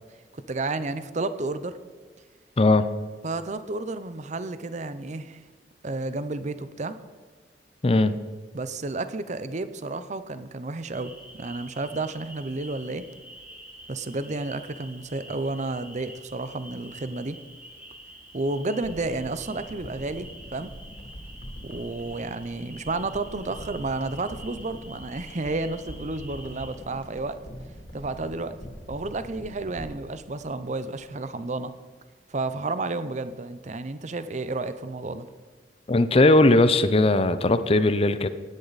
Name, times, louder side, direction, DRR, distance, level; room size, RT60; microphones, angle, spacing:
voice 1, 0.3-1.7 3.2-5.4 5.8-7.0 8.5-13.1 13.9-17.4 18.3-20.7 21.6-27.4 27.9-28.6 28.9-31.7 32.3-35.3, right 2 dB, 40° right, 12 dB, 0.7 m, -31 dB
voice 2, 2.6-2.9 7.8-8.2 35.9-38.3, left 2 dB, 35° left, 12 dB, 0.6 m, -19 dB
sound 1, 10.9-26.7, right 1 dB, 10° right, 2.3 m, -47 dB
sound 2, 18.8-31.3 31.6-31.7, equal, 75° left, 3.0 m, -43 dB
16.5 x 10.0 x 4.1 m, 1.5 s
head